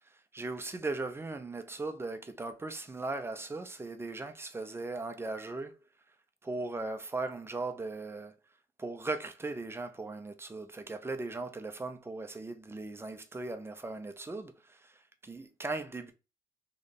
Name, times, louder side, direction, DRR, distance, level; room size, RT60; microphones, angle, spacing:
voice 1, 0.3-5.8 6.4-8.3 8.8-16.1, right 3 dB, 15° right, 0.7 m, -38 dB
3.4 x 3.2 x 4.1 m
cardioid pair, 120°, 15 cm